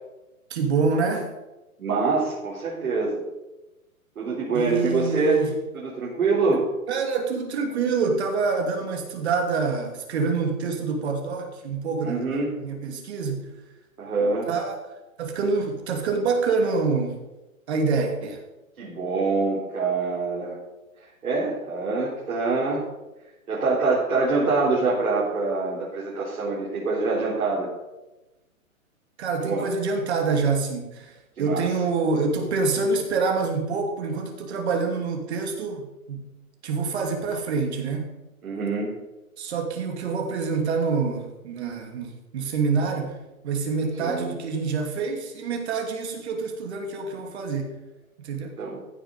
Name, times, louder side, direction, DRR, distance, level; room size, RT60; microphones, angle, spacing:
voice 1, 0.5-1.3 4.5-5.5 6.9-13.5 14.5-14.8 15.2-17.2 17.7-18.4 29.2-36.2 36.6-38.1 39.4-43.2 43.4-47.7 48.2-48.5, right 4 dB, 50° right, 3 dB, 2.5 m, -26 dB
voice 2, 1.8-3.2 4.2-5.4 5.8-6.6 12.0-12.5 14.0-14.5 18.8-20.6 21.2-22.8 23.5-27.7 29.4-29.6 31.4-31.6 38.4-38.9 44.0-44.3 48.6-48.8, right 3 dB, 80° right, -6 dB, 4.2 m, -25 dB
14.5 x 6.7 x 5.4 m, 1.0 s
hypercardioid pair, 155°, 43 cm